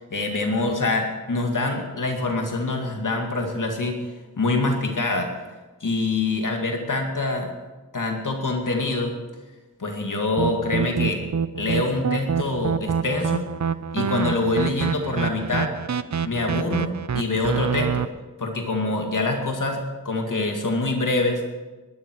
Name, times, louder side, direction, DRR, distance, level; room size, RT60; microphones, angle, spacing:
voice 1, 0.1-5.4 5.8-7.5 7.9-9.1 9.8-11.2 11.6-13.5 13.9-15.7 16.2-18.1 18.4-21.4, left 2 dB, 65° left, 2 dB, 2.4 m, -25 dB
sound 1, 10.4-18.0, right 6 dB, 55° right, 0.7 m, -26 dB
21.5 x 12.5 x 4.7 m, 1.2 s
wide cardioid pair, 60°, 34 cm